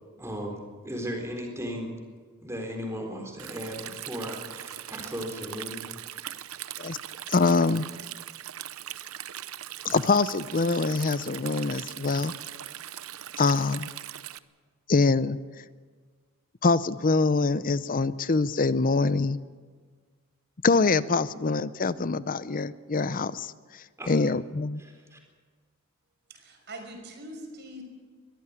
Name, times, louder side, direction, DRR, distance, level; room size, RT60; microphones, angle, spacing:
voice 1, 0.2-1.9 2.4-5.9 24.0-24.1 24.8-25.2, equal, 15° right, 2 dB, 3.9 m, -36 dB
Stream, 3.4-14.4, right 12 dB, 70° right, 0.7 m, -40 dB
voice 2, 7.3-7.9 9.8-12.3 13.4-13.9 14.9-15.4 16.6-19.4 20.6-23.5 24.1-24.8, left 3 dB, 40° left, 16 dB, 0.6 m, -24 dB
voice 3, 26.3-27.8, right 1 dB, 50° right, 3 dB, 5.4 m, -42 dB
22.0 x 14.5 x 9.7 m, 1.5 s
head